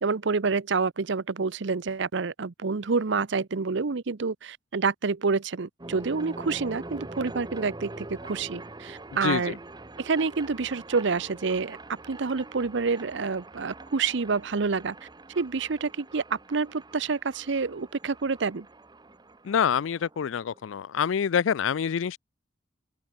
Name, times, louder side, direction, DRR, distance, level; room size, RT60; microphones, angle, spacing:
voice 1, 0.0-9.6 10.0-15.0 15.4-18.7, right 4 dB, 65° right, 0.7 m, -28 dB
sound 1, 5.8-20.8, right 2 dB, 20° right, 1.0 m, -44 dB
voice 2, 9.2-9.5 19.4-22.2, left 7 dB, 85° left, 0.4 m, -26 dB
open air
head